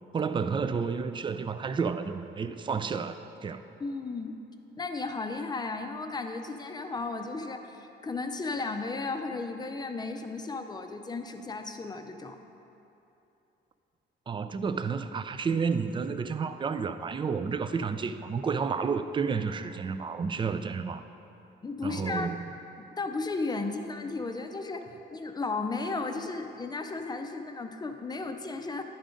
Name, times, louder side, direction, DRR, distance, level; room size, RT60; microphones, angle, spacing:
voice 1, 0.1-3.6 14.3-21.0 21.8-22.4, right 5 dB, 25° right, 10 dB, 0.3 m, -31 dB
voice 2, 3.8-4.4 4.8-12.4 21.6-22.4 22.8-24.8 25.1-28.8, left 3 dB, 20° left, 6 dB, 0.6 m, -34 dB
10.0 x 3.8 x 5.0 m, 2.9 s
cardioid pair, 90°, 20 cm